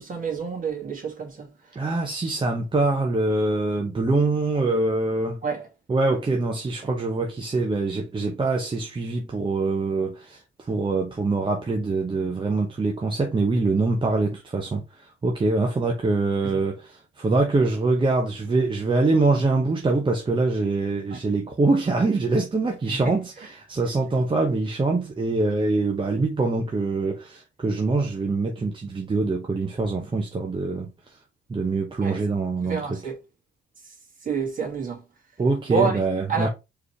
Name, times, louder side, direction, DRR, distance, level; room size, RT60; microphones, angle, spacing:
voice 1, 0.0-1.5 5.4-5.7 21.1-21.2 22.9-23.1 32.0-32.2 32.6-33.2 34.2-35.0 35.7-36.0 36.3-36.5, right 5 dB, 45° right, 2.1 m, -28 dB
voice 2, 1.7-5.4 5.9-31.2 31.5-33.0 35.4-36.5, right 3 dB, 25° right, 0.9 m, -24 dB
4.8 x 3.2 x 3.3 m
cardioid pair, 90°, 20 cm